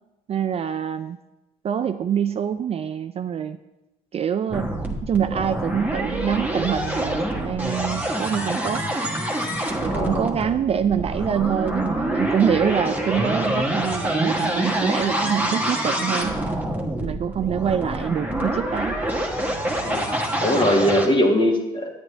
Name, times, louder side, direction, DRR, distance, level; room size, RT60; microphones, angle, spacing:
voice 1, 0.3-1.2 1.6-3.6 4.1-4.7 5.0-8.8 9.8-16.4 17.0-19.0, right 8 dB, 35° right, 9 dB, 0.4 m, -25 dB
sound 1, 4.5-21.1, right 1 dB, 10° right, 1.3 m, -26 dB
voice 2, 9.9-10.2 19.8-20.0 20.4-21.9, equal, 30° left, 2 dB, 1.7 m, -20 dB
9.5 x 9.4 x 3.3 m, 0.99 s
cardioid pair, 110°, 17 cm